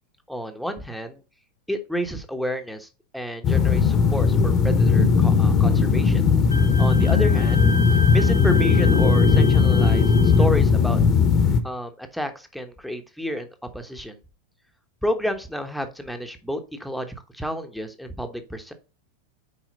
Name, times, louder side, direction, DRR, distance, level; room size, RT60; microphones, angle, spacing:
voice 1, 0.3-1.2 1.7-2.9 3.1-6.3 6.8-7.7 8.1-11.0 11.6-14.2 15.0-18.7, equal, ahead, 6 dB, 1.1 m, -30 dB
sound 1, 3.4-11.6, left 5 dB, 30° left, 1.1 m, -18 dB
Wind instrument woodwind instrument, 6.5-10.5, equal, 80° left, 0.7 m, -33 dB
7.2 x 4.9 x 4.0 m, 0.31 s
figure-of-eight pair, 90°, 0 cm